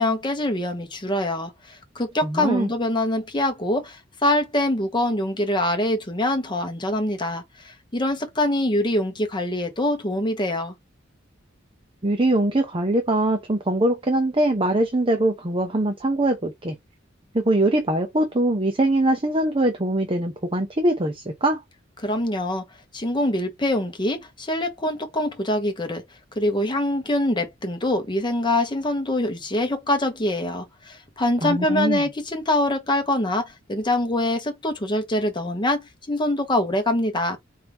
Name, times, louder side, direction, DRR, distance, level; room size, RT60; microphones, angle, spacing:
voice 1, 0.0-10.7 22.0-22.6 22.9-26.0 26.4-37.4, left 1 dB, 25° left, 1.0 m, -24 dB
voice 2, 2.2-2.7 12.0-16.8 17.3-21.6 31.4-32.0, right 1 dB, 25° right, 0.7 m, -22 dB
4.6 x 2.7 x 3.5 m
head